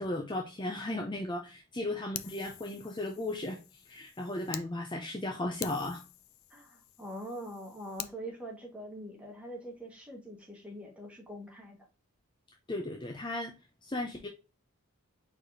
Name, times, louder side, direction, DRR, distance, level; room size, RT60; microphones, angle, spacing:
voice 1, 0.0-3.6 3.9-6.0 12.7-13.5 13.8-14.3, left 1 dB, 20° left, 0.6 m, -35 dB
Fire, 2.1-4.7 5.1-5.2 5.6-8.2, left 11 dB, 65° left, 0.5 m, -46 dB
voice 2, 6.5-11.8, right 1 dB, 5° right, 1.4 m, -43 dB
4.8 x 4.2 x 2.7 m
head